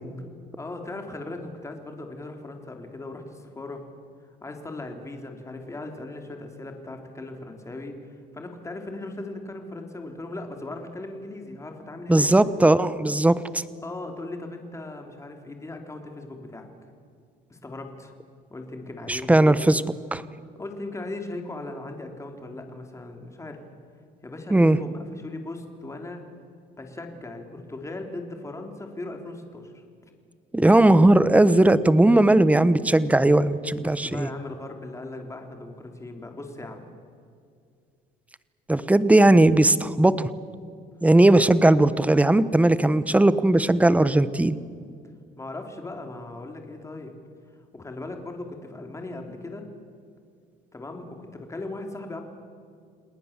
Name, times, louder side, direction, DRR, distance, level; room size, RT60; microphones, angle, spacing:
voice 1, 0.5-3.8 4.4-12.3 13.8-16.7 17.5-18.1 18.5-19.7 20.6-23.6 24.2-26.2 26.8-29.8 33.8-36.8 45.4-47.1 47.7-49.6 50.7-52.2, left 2 dB, 15° left, 4 dB, 3.6 m, -38 dB
voice 2, 12.1-13.6 19.1-19.8 20.1-20.2 24.5-24.8 30.5-34.3 38.7-40.3 41.0-44.6, right 1 dB, 10° right, 15 dB, 1.0 m, -18 dB
29.5 x 19.5 x 7.5 m, 2.3 s
cardioid pair, 110°, 17 cm